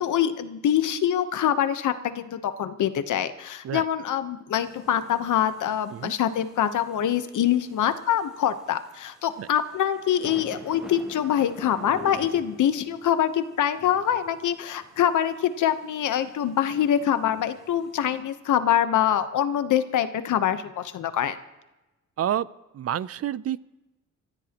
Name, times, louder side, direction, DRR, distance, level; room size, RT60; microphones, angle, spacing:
voice 1, 0.0-21.4, left 10 dB, 80° left, 10 dB, 1.0 m, -25 dB
sound 1, 4.6-18.2, equal, ahead, 3.7 m, -48 dB
voice 2, 22.2-22.5 22.7-23.7, right 11 dB, 50° right, 18 dB, 0.5 m, -28 dB
25.0 x 15.0 x 3.0 m, 1.0 s
cardioid pair, 115°, 30 cm